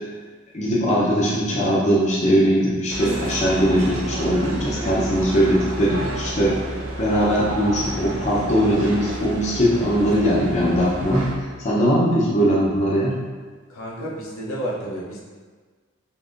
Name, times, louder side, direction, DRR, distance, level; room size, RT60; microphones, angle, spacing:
voice 1, 0.5-6.5 7.0-11.3 11.6-13.2, equal, 35° left, -6 dB, 0.5 m, -20 dB
sound 1, 2.9-11.4, right 1 dB, 70° right, 0.5 m, -31 dB
voice 2, 13.7-15.2, right 1 dB, 90° left, -5 dB, 0.7 m, -30 dB
3.5 x 2.6 x 2.4 m, 1.5 s
head